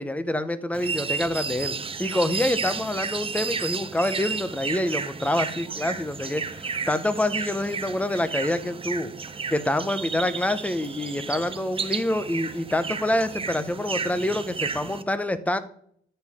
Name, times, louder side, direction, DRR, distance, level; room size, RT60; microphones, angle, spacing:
voice 1, 0.0-9.1 9.5-15.6, left 1 dB, 5° left, 12 dB, 0.9 m, -26 dB
morning birds, 0.7-15.0, right 5 dB, 25° right, 0.7 m, -32 dB
13.0 x 4.6 x 3.7 m, 0.62 s
cardioid pair, 90°, 20 cm